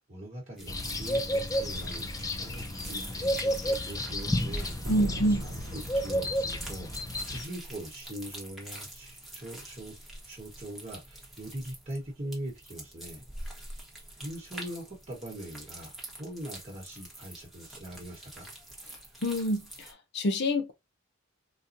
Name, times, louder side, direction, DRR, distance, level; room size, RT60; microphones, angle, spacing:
voice 1, 0.0-4.9 5.3-10.0 10.2-13.2 14.2-18.5, right 1 dB, 35° right, 1.1 m, -42 dB
sound 1, 0.6-19.9, right 1 dB, ahead, 1.0 m, -45 dB
sound 2, 0.7-7.4, equal, 15° left, 0.4 m, -32 dB
sound 3, 4.8-6.8, right 2 dB, 70° right, 0.7 m, -40 dB
voice 2, 4.9-5.5 19.2-20.7, equal, 60° left, 0.6 m, -27 dB
4.1 x 2.2 x 2.5 m
head